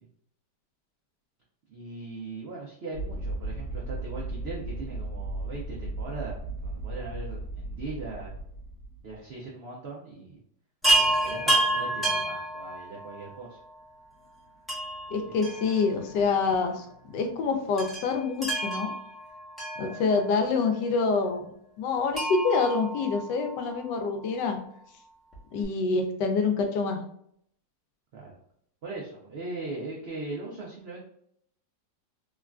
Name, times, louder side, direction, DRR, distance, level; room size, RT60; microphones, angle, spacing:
voice 1, 1.7-6.4 6.6-8.3 9.0-10.4 10.9-13.6 15.4-15.8 19.7-20.0 28.1-28.3 28.8-31.0, right 3 dB, 75° right, -3 dB, 0.5 m, -39 dB
sound 1, 2.9-9.2, right 2 dB, 55° left, 0.6 m, -36 dB
Chime, 10.8-13.3 14.7-16.2 16.5-16.6 17.8-20.5 22.1-23.8 25.3-25.4 25.6-25.7, right 1 dB, ahead, 0.6 m, -29 dB
voice 2, 15.1-18.9 19.8-21.4 21.8-24.6 25.5-27.0, left 4 dB, 80° left, 5 dB, 1.2 m, -26 dB
3.5 x 2.4 x 2.2 m, 0.69 s
omnidirectional pair, 1.9 m